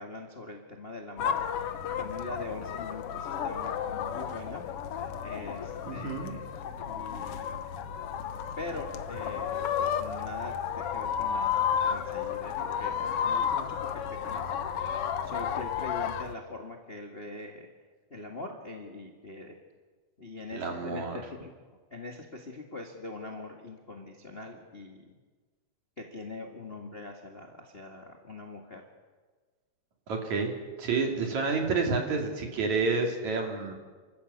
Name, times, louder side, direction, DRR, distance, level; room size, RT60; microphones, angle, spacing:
voice 1, 0.0-4.6 5.2-6.5 6.9-7.6 8.6-12.5 12.8-13.8 14.1-14.4 14.7-17.7 18.1-19.6 20.2-21.5 21.9-25.0 26.0-28.8, left 2 dB, 30° left, 2 dB, 1.0 m, -42 dB
sound 1, 1.2-16.3, left 8 dB, 85° left, 1.2 m, -32 dB
voice 2, 5.9-6.4 20.5-21.2 30.1-30.5 30.8-33.7, right 4 dB, 55° right, 3 dB, 3.8 m, -29 dB
29.0 x 13.5 x 8.3 m, 1.4 s
omnidirectional pair, 4.1 m